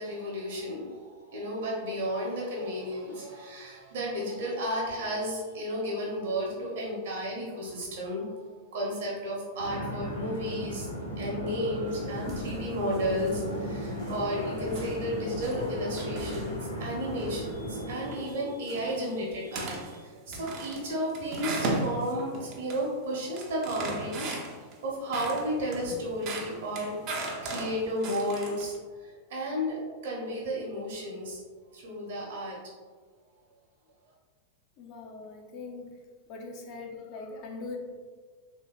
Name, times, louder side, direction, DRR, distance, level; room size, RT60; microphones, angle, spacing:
voice 1, 0.0-24.4 24.8-28.7 29.0-31.4 31.7-32.6, equal, 60° right, -3 dB, 0.9 m, -33 dB
sound 1, 9.6-18.0, equal, 85° left, 0.6 m, -36 dB
sound 2, 11.9-12.6 12.9-13.4 13.8-14.2 14.6-16.8 17.2-17.5 17.9-18.4 18.7-19.1 19.5-20.0 20.3-22.9 23.1-24.7 25.1-28.8, right 2 dB, 40° right, 0.5 m, -37 dB
voice 2, 34.8-36.0 36.3-37.8, left 3 dB, 40° left, 1 dB, 0.5 m, -41 dB
3.3 x 2.7 x 2.3 m, 1.5 s
figure-of-eight pair, 90°, 0 cm